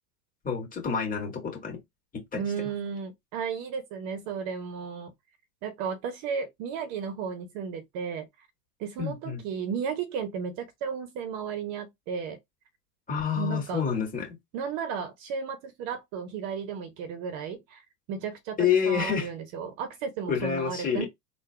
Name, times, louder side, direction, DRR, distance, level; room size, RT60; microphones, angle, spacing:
voice 1, 0.4-1.8 2.1-2.4 9.0-9.4 13.1-14.4 18.6-19.3 20.3-21.1, left 7 dB, 15° left, 2.0 m, -28 dB
voice 2, 2.4-5.1 5.6-8.3 8.8-12.4 13.4-13.8 14.5-17.8 18.1-21.1, right 6 dB, 45° right, 1.0 m, -34 dB
3.8 x 2.5 x 3.3 m
hypercardioid pair, 115°, 47 cm